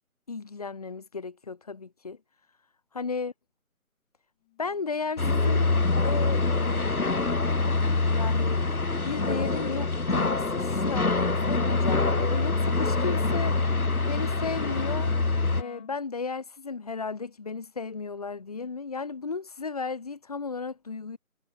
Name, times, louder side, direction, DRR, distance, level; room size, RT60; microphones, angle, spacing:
voice 1, 0.3-2.2 2.9-3.3 4.6-7.4 8.1-8.6 9.0-13.6 14.1-15.1 15.5-21.2, left 4 dB, 25° left, 5.1 m, -34 dB
Wind instrument woodwind instrument, 4.5-16.0, left 18 dB, 10° left, 6.9 m, -50 dB
sound 1, 5.2-15.6, left 3 dB, 75° left, 3.4 m, -25 dB
figure-of-eight pair, 175°, 43 cm